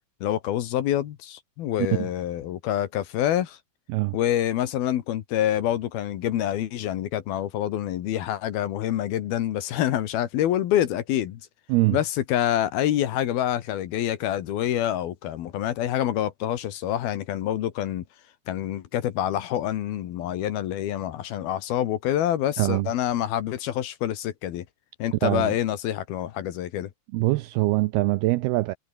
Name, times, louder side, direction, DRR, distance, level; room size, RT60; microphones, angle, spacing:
voice 1, 0.2-3.6 4.1-11.4 11.9-18.0 18.5-24.6 25.0-26.9, left 11 dB, 65° left, 3.0 m, -26 dB
voice 2, 11.7-12.0 22.6-22.9 25.2-25.5 27.1-28.8, right 19 dB, 85° right, 2.3 m, -23 dB
omnidirectional pair, 5.1 m